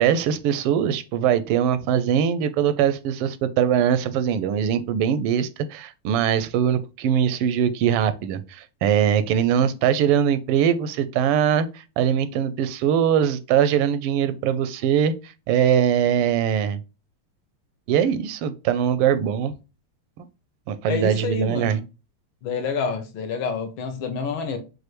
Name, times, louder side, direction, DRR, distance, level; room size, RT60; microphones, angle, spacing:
voice 1, 0.0-11.7 12.0-15.1 15.5-16.8 17.9-19.5 20.2-20.3 20.7-21.8, right 9 dB, 85° right, 1.5 m, -21 dB
voice 2, 20.9-21.8 22.4-24.6, left 5 dB, 70° left, 1.5 m, -28 dB
6.2 x 2.6 x 3.0 m
omnidirectional pair, 2.4 m